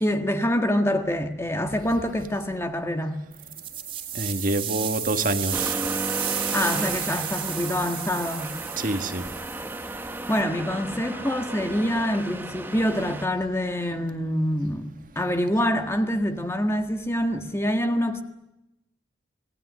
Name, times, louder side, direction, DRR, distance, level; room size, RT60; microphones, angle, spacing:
voice 1, 0.0-3.2 6.5-8.5 10.3-14.9 15.1-18.2, equal, 15° left, 1.7 m, -25 dB
sound 1, 3.3-10.4, right 9 dB, 30° right, 3.2 m, -32 dB
voice 2, 4.1-5.8 8.8-9.3, right 2 dB, 50° right, 1.8 m, -26 dB
Accelerating revving vroom, 5.5-13.3, right 1 dB, 10° right, 1.3 m, -34 dB
26.0 x 19.0 x 9.6 m
head